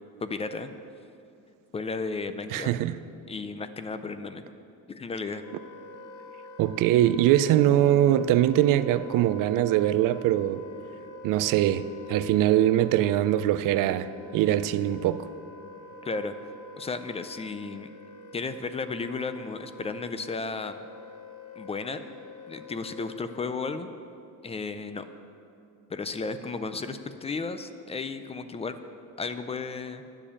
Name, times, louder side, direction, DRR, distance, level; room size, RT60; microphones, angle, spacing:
voice 1, 0.2-0.7 1.7-2.7 3.3-4.4 4.9-5.4 16.0-16.3 16.8-17.9 18.3-20.8 21.6-22.2 22.5-23.9 24.4-25.1 25.9-28.8 29.2-30.0, left 4 dB, 20° left, 0.4 m, -34 dB
voice 2, 2.5-3.0 6.6-10.6 11.2-15.3, right 12 dB, 75° right, 0.5 m, -22 dB
Wind instrument woodwind instrument, 5.4-23.6, left 2 dB, 70° left, 1.1 m, -46 dB
Acoustic guitar, 7.7-11.9 12.8-12.9, right 3 dB, 20° right, 1.2 m, -48 dB
10.0 x 6.8 x 8.5 m
cardioid pair, 155°, 32 cm